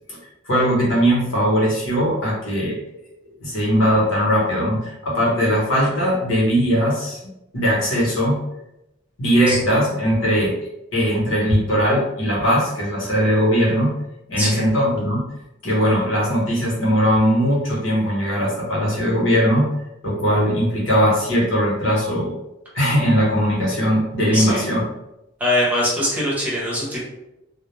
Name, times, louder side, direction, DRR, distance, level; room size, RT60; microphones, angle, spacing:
voice 1, 0.5-2.8 3.4-7.2 7.5-8.4 9.2-10.5 10.9-13.9 14.3-15.3 15.6-19.7 20.0-22.4 22.7-24.8, equal, 80° left, -4 dB, 1.0 m, -19 dB
voice 2, 24.3-24.6 25.4-27.0, left 1 dB, 10° right, -6 dB, 0.8 m, -22 dB
2.3 x 2.0 x 3.1 m, 0.89 s
head